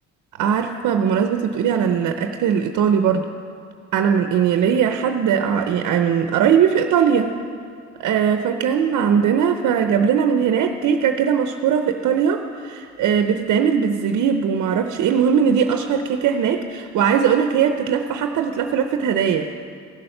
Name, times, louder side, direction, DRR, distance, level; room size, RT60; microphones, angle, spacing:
voice 1, 0.4-3.3 3.9-7.3 8.0-19.5, right 7 dB, 75° right, 6 dB, 0.7 m, -20 dB
16.0 x 7.0 x 6.6 m, 2.4 s
cardioid pair, 90°, 30 cm